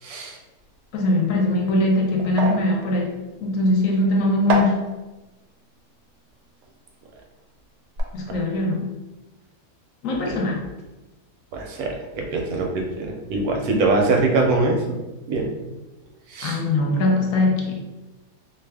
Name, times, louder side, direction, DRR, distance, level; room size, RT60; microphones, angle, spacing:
voice 1, 0.0-0.4 8.3-8.4 10.3-10.4 11.5-15.0 15.3-15.6 16.3-16.6, right 3 dB, 85° right, 1 dB, 1.1 m, -23 dB
voice 2, 0.9-4.9 8.1-8.9 10.0-10.6 16.4-17.8, left 2 dB, 70° left, 1 dB, 0.9 m, -21 dB
sound 1, 1.5-7.5 7.7-8.0, right 4 dB, 65° right, 0.8 m, -31 dB
2.6 x 2.3 x 3.3 m, 1.1 s
omnidirectional pair, 1.5 m